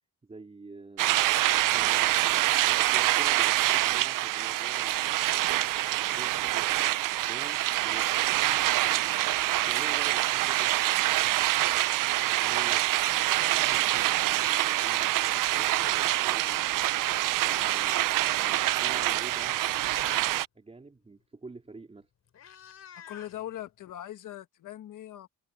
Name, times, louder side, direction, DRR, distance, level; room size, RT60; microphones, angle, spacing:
voice 1, 0.2-2.2 2.7-5.2 5.9-8.1 8.8-9.4 9.6-11.7 12.3-12.9 13.4-16.7 17.5-19.6 20.6-22.1, right 3 dB, 20° right, 3.6 m, -48 dB
sound 1, 1.0-20.4, right 15 dB, 70° right, 0.5 m, -26 dB
Meow, 13.7-13.8 14.1-15.3 16.4-17.7 18.0-18.3 19.0-19.1 19.4-20.4 21.7-21.8 22.0-23.9, left 9 dB, 50° left, 3.4 m, -49 dB
voice 2, 17.6-17.9 22.9-25.3, left 12 dB, 65° left, 1.5 m, -41 dB
cardioid pair, 165°, 34 cm